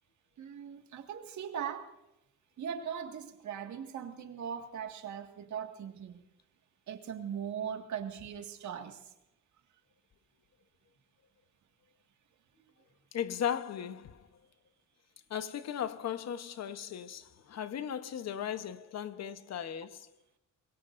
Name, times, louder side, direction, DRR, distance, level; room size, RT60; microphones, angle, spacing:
voice 1, 0.4-1.9 2.6-6.2 6.9-9.1, right 8 dB, 70° right, 2.0 m, -40 dB
voice 2, 13.1-14.3 15.3-20.1, left 9 dB, 60° left, 1.1 m, -37 dB
25.5 x 21.5 x 2.6 m
cardioid pair, 90°, 30 cm